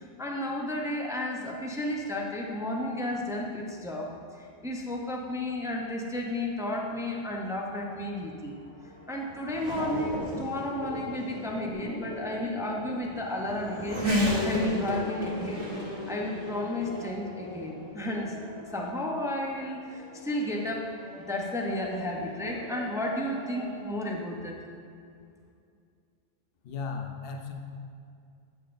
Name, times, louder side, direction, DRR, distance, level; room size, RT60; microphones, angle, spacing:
voice 1, 0.0-8.5 9.1-15.6 16.1-24.6, left 1 dB, 5° right, -1 dB, 0.4 m, -33 dB
Race car auto racing / Accelerating revving vroom, 7.6-23.9, left 1 dB, 25° right, 1.6 m, -36 dB
voice 2, 26.6-27.5, left 5 dB, 60° left, 4 dB, 0.8 m, -36 dB
8.6 x 8.1 x 2.5 m, 2.4 s
omnidirectional pair, 1.2 m